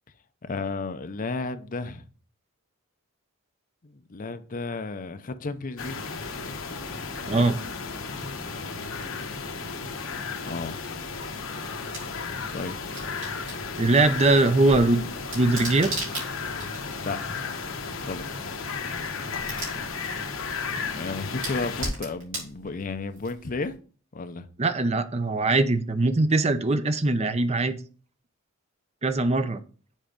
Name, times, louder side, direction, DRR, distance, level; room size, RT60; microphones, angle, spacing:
voice 1, 0.4-2.0 3.8-6.0 10.4-10.8 12.5-12.8 17.0-17.4 18.0-18.5 20.9-23.7 24.1-24.5, left 3 dB, 40° left, 0.6 m, -33 dB
sound 1, 5.8-21.9, left 4 dB, 70° left, 1.1 m, -34 dB
voice 2, 7.3-7.6 13.8-15.0 15.3-16.0 24.6-27.8 29.0-29.6, right 2 dB, 30° right, 0.6 m, -21 dB
sound 2, 9.2-23.7, right 1 dB, 65° right, 3.6 m, -41 dB
7.4 x 4.4 x 5.2 m
head